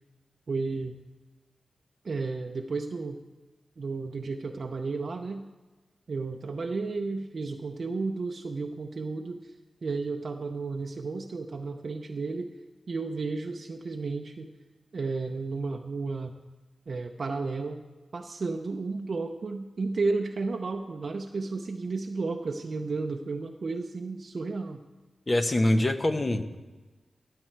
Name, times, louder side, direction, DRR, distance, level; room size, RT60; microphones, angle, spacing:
voice 1, 0.5-0.9 2.0-3.2 3.8-5.4 6.1-9.5 9.8-12.5 12.9-14.5 14.9-16.3 16.9-17.8 18.1-24.8, right 3 dB, 60° right, 3 dB, 0.6 m, -33 dB
voice 2, 25.3-26.6, left 1 dB, 35° left, 7 dB, 1.0 m, -24 dB
16.0 x 7.6 x 4.5 m, 1.2 s
cardioid pair, 65°, 0 cm